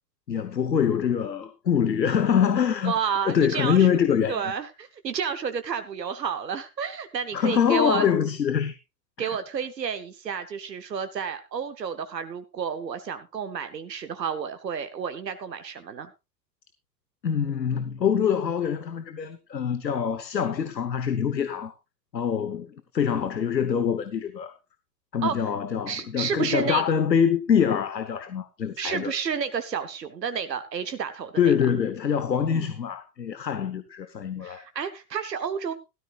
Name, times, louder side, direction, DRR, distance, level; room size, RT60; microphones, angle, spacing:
voice 1, 0.3-2.9 3.3-4.4 7.3-8.8 9.2-9.4 17.2-21.7 22.1-24.5 25.1-29.1 31.4-34.6, left 7 dB, 80° left, 1.2 m, -24 dB
voice 2, 2.8-3.9 4.3-8.1 9.2-16.1 25.2-25.4 25.9-26.8 28.8-31.5 32.5-32.7 34.4-35.7, right 7 dB, 75° right, 1.2 m, -31 dB
16.5 x 13.5 x 2.4 m
figure-of-eight pair, 90°, 50 cm